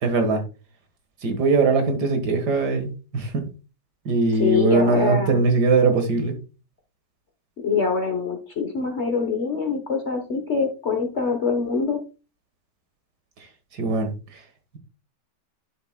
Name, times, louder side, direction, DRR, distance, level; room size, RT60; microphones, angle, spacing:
voice 1, 0.0-0.4 1.2-3.4 4.1-6.4 13.8-14.1, right 3 dB, 65° right, 6 dB, 2.0 m, -21 dB
voice 2, 4.4-5.4 7.6-12.0, left 5 dB, 45° left, 4 dB, 1.1 m, -24 dB
10.5 x 6.5 x 2.2 m, 0.32 s
omnidirectional pair, 1.9 m